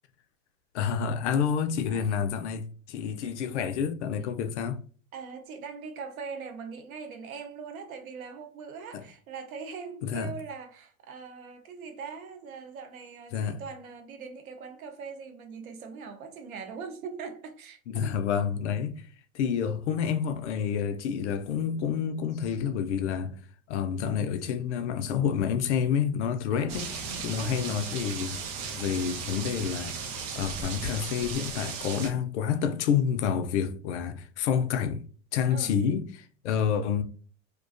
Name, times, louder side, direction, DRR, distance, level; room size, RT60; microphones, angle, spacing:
voice 1, 0.7-4.8 8.9-9.0 10.0-10.3 13.3-13.6 17.9-19.1 19.3-23.4 23.7-26.9 27.2-28.4 28.8-35.1 35.3-37.0, left 7 dB, 55° left, 0.5 m, -29 dB
voice 2, 5.1-18.3 26.5-26.8 27.4-27.7 35.5-35.7, right 5 dB, 80° right, 0.7 m, -41 dB
sound 1, 26.7-32.1, right 5 dB, 30° right, 0.4 m, -36 dB
2.3 x 2.2 x 2.4 m
hypercardioid pair, 120°, 42 cm